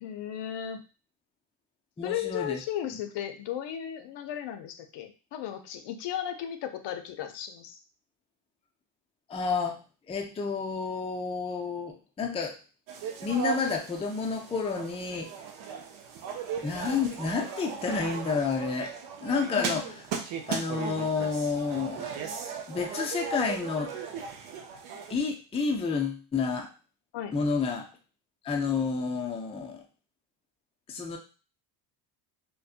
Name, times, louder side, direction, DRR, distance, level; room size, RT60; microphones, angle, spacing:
voice 1, 0.0-0.8 2.0-7.8 19.4-19.8 27.1-27.3, left 10 dB, 60° left, 8 dB, 0.6 m, -35 dB
voice 2, 2.0-2.6 9.3-9.8 10.1-12.6 13.2-15.3 16.6-18.9 19.2-19.8 20.5-22.1 22.7-23.9 25.1-26.7 27.3-27.9 28.4-29.8 30.9-31.2, left 5 dB, 15° left, 2 dB, 0.3 m, -30 dB
sound 1, 12.9-25.1, right 7 dB, 75° right, 0.6 m, -37 dB
2.5 x 2.2 x 2.4 m, 0.34 s
supercardioid pair, 75°, 48 cm